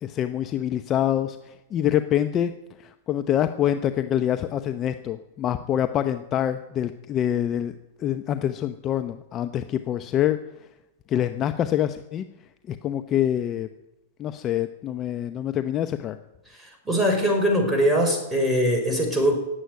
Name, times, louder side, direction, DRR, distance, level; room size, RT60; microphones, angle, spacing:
voice 1, 0.0-2.5 2.8-7.7 8.0-10.4 11.1-12.2 12.7-13.7 14.2-16.2, left 11 dB, 30° left, 9 dB, 0.8 m, -25 dB
voice 2, 16.9-19.3, equal, 5° right, 0 dB, 4.9 m, -21 dB
17.5 x 8.1 x 9.2 m, 0.96 s
hypercardioid pair, 115°, 0 cm